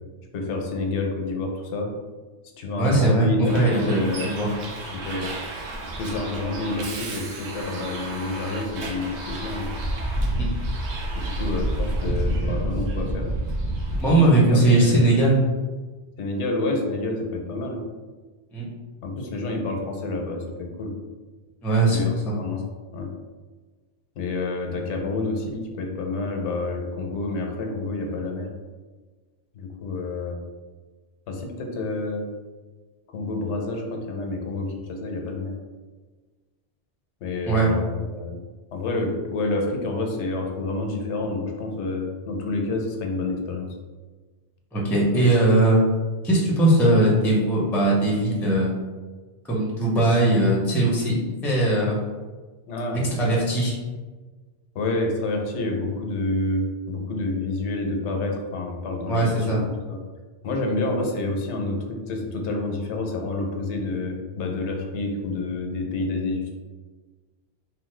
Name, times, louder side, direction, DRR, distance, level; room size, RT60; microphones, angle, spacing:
voice 1, 0.3-1.9 2.6-4.3 4.9-5.3 6.0-9.7 11.1-13.3 14.5-15.1 16.2-17.8 19.0-20.9 21.9-22.6 22.9-23.1 24.2-28.5 29.6-30.4 31.3-32.3 33.1-35.5 37.2-38.4 38.7-43.7 52.7-53.0 54.7-60.0 60.4-66.5, left 2 dB, 90° left, 2 dB, 0.9 m, -28 dB
voice 2, 2.8-3.3 3.5-4.5 10.3-10.5 14.0-15.4 18.5-18.7 21.6-22.0 22.3-22.4 37.5-37.7 44.7-45.8 46.2-48.7 49.5-52.0 53.1-53.7 59.1-59.6, right 2 dB, 5° left, -4 dB, 0.4 m, -20 dB
Bus, 3.5-14.0, right 1 dB, 80° right, 0.9 m, -29 dB
2.9 x 2.2 x 3.1 m, 1.3 s
omnidirectional pair, 1.1 m